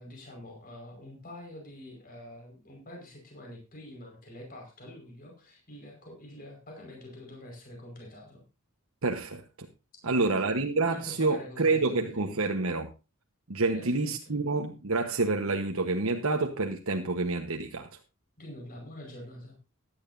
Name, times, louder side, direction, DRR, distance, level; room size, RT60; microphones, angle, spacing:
voice 1, 0.0-8.4 10.0-10.4 10.9-12.6 13.7-14.4 18.4-19.6, left 1 dB, 40° left, 5.1 m, -46 dB
voice 2, 9.0-9.7 10.0-12.9 13.5-17.9, right 3 dB, 70° right, 1.2 m, -28 dB
16.0 x 11.5 x 2.7 m
head